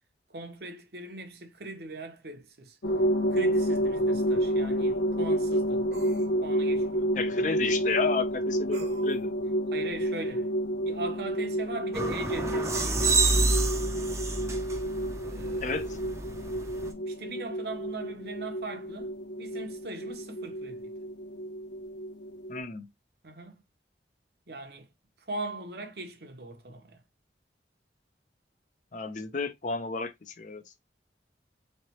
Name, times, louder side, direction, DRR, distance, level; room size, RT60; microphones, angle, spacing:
voice 1, 0.3-2.8 3.3-5.9 6.4-7.1 9.7-10.5 10.8-13.4 15.2-15.7 16.8-19.1 19.4-20.9 23.2-23.6 24.5-24.9 25.3-27.0, right 2 dB, 65° right, 1.0 m, -40 dB
sound 1, 2.8-22.6, equal, 85° left, 0.7 m, -30 dB
sound 2, 3.6-3.7 5.9-6.3 8.7-9.2, right 3 dB, 80° right, 1.0 m, -45 dB
voice 2, 7.1-9.3 15.6-15.9 22.5-22.9 28.9-30.6, left 4 dB, 45° left, 0.6 m, -32 dB
sound 3, 11.9-16.9, right 3 dB, 15° right, 0.6 m, -28 dB
3.9 x 3.3 x 2.9 m
head